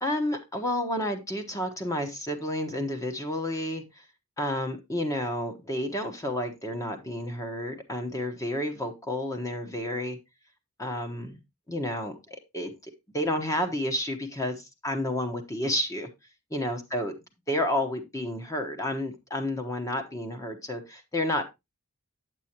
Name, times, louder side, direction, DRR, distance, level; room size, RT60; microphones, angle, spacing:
voice 1, 0.0-4.0 4.4-10.2 10.8-11.4 11.7-16.1 16.5-17.1 17.5-21.4, left 1 dB, 15° left, 1.2 m, -31 dB
8.2 x 8.2 x 2.9 m
head